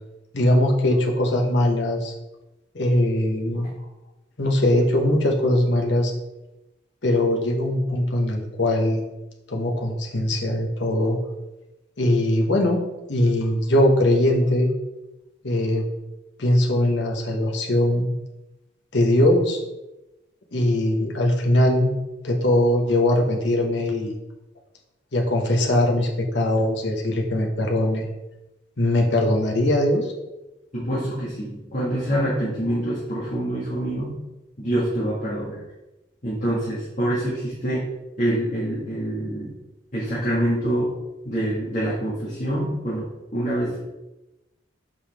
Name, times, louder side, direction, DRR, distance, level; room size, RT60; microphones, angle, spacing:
voice 1, 0.3-2.1 2.7-3.7 4.4-6.1 7.0-9.0 9.5-11.2 12.0-12.8 13.1-14.7 15.4-15.8 16.4-18.1 18.9-19.6 20.5-21.9 22.2-24.1 25.1-28.1 28.8-30.1, left 1 dB, 65° left, 1 dB, 1.2 m, -21 dB
voice 2, 30.7-34.2 34.6-35.6 36.2-37.8 38.2-39.5 39.9-40.9 41.3-43.8, right 1 dB, 40° left, -8 dB, 1.8 m, -26 dB
6.8 x 5.5 x 3.5 m, 0.99 s
head